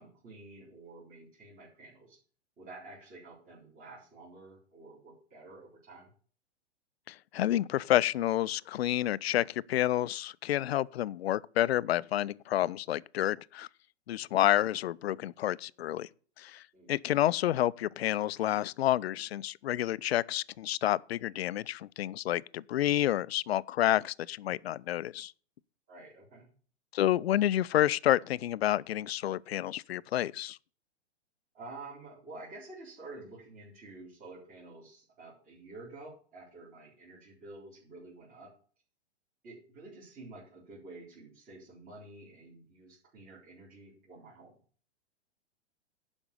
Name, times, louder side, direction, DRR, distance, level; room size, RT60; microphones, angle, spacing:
voice 1, 0.0-2.2 2.6-6.1 16.7-16.9 25.9-26.5 31.5-38.5 39.4-44.5, right 2 dB, 25° right, 3.8 m, -50 dB
voice 2, 7.1-13.7 14.1-16.1 16.4-16.6 16.9-25.3 26.9-30.6, left 13 dB, 60° left, 0.5 m, -29 dB
11.5 x 5.3 x 6.7 m
figure-of-eight pair, 110°, 34 cm